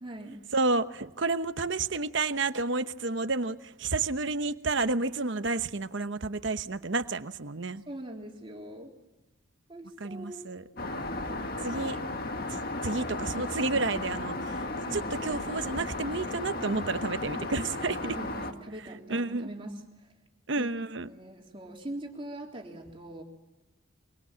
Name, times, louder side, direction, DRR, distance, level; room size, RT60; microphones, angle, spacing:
voice 1, 0.0-0.4 7.9-8.9 9.7-10.6 14.8-15.0 18.0-20.1 20.6-20.7 21.0-23.2, right 1 dB, 25° right, 0 dB, 3.5 m, -42 dB
voice 2, 0.5-7.8 10.0-10.6 11.6-12.0 12.5-14.6 14.9-18.0 19.1-19.5 20.5-21.1, right 3 dB, 60° right, 10 dB, 1.0 m, -30 dB
Aircraft, 10.8-18.5, left 2 dB, 45° left, 1.9 m, -35 dB
24.5 x 24.5 x 7.5 m, 1.0 s
head